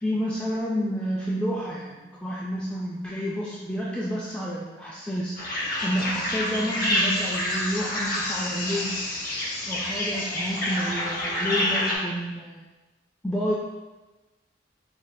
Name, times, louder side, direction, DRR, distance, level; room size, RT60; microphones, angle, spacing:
voice 1, 0.0-5.4 5.8-9.0 9.7-12.6 13.2-13.5, equal, 5° left, -6 dB, 0.3 m, -29 dB
sound 1, 5.4-11.9, left 1 dB, 50° left, 0.7 m, -28 dB
4.9 x 3.2 x 2.3 m, 1.2 s
head